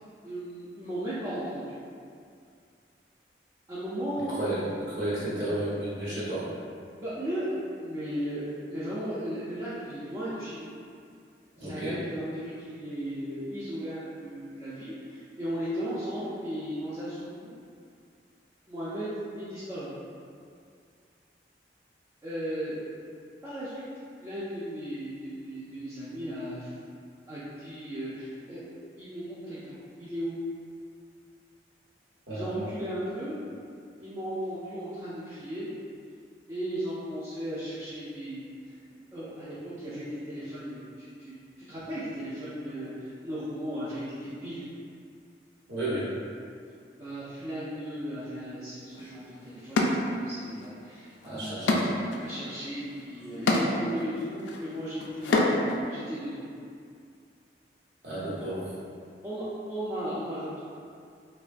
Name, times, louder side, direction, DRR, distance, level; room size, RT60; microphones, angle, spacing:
voice 1, 0.2-1.6 3.7-4.3 6.9-10.7 11.6-17.6 18.7-19.1 19.3-19.9 22.2-22.8 23.4-23.9 24.2-26.7 27.3-28.6 29.0-30.4 32.3-33.4 34.0-35.7 36.5-38.8 39.1-41.3 41.7-44.6 47.0-51.9 52.2-56.4 58.4-58.5 59.2-60.6, equal, 20° right, -12 dB, 0.4 m, -36 dB
voice 2, 4.9-6.5 11.6-12.0 32.3-32.5 45.7-46.1 51.3-51.8 58.0-58.6, right 1 dB, 80° right, -9 dB, 1.0 m, -32 dB
sound 1, 48.9-49.0 49.7-50.7 51.0-55.8, left 2 dB, 85° left, 0.3 m, -28 dB
3.1 x 2.2 x 2.5 m, 2.3 s
head